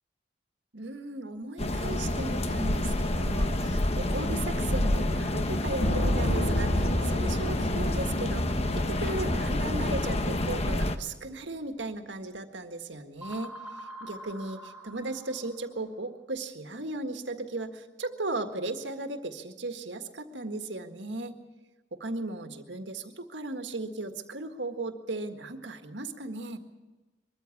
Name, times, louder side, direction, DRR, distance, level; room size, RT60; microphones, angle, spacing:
voice 1, 0.7-13.6 14.0-21.4 21.9-26.6, right 2 dB, 90° right, 6 dB, 1.8 m, -36 dB
sound 1, 1.6-11.0, left 1 dB, 35° left, 1.1 m, -28 dB
sound 2, 5.8-10.1 10.3-10.4, equal, 65° left, 3.2 m, -31 dB
sound 3, 13.2-15.8, equal, 5° right, 4.8 m, -44 dB
22.5 x 14.0 x 8.5 m, 1.2 s
head